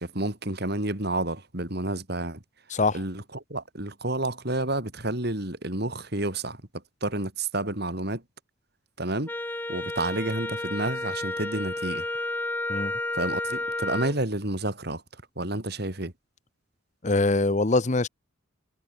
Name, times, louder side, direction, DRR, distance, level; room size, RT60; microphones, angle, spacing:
voice 1, 0.0-2.4 2.9-3.2 3.5-6.6 7.0-8.2 9.0-9.3 9.7-12.0 13.1-15.0 15.4-16.1, right 2 dB, 55° right, 4.2 m, -30 dB
voice 2, 2.7-3.0 12.7-12.9 17.0-18.1, left 3 dB, 35° left, 0.9 m, -23 dB
Wind instrument woodwind instrument, 9.3-14.2, left 2 dB, 10° left, 0.7 m, -31 dB
head